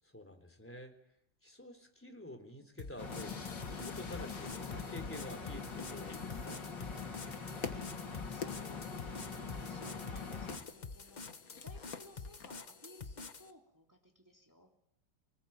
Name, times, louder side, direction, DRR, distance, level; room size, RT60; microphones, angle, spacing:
voice 1, 0.1-0.9 1.4-6.7, left 1 dB, 5° left, 5 dB, 3.5 m, -49 dB
sound 1, 2.8-13.5, left 4 dB, 30° left, 1.0 m, -47 dB
sound 2, 3.0-10.6, left 5 dB, 85° left, 3.3 m, -43 dB
sound 3, 3.7-12.5, left 6 dB, 55° left, 1.9 m, -51 dB
voice 2, 8.3-14.7, left 1 dB, 10° right, 1 dB, 3.0 m, -58 dB
26.0 x 19.5 x 8.8 m, 0.75 s
omnidirectional pair, 1.9 m